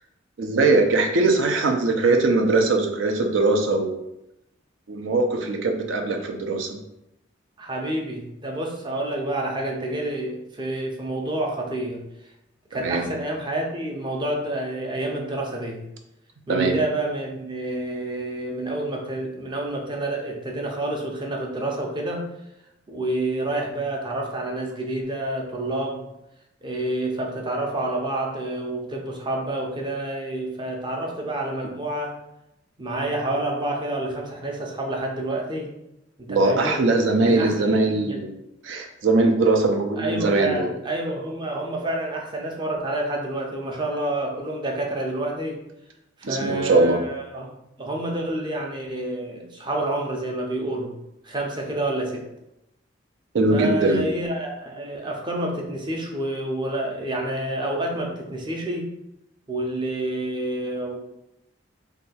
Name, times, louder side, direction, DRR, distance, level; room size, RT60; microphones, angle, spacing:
voice 1, 0.4-4.0 4.9-6.8 12.7-13.1 16.5-16.8 36.3-38.4 38.6-40.7 46.2-47.0 53.3-54.0, right 3 dB, 70° right, 4 dB, 0.5 m, -21 dB
voice 2, 7.6-12.0 12.7-15.8 16.5-22.2 22.9-26.0 26.6-32.1 32.8-35.7 36.2-36.9 37.2-38.2 39.9-45.6 46.2-47.5 47.8-50.9 51.2-52.3 53.5-58.9 59.5-61.0, right 1 dB, 25° right, 0 dB, 0.6 m, -28 dB
2.7 x 2.3 x 4.1 m, 0.86 s
head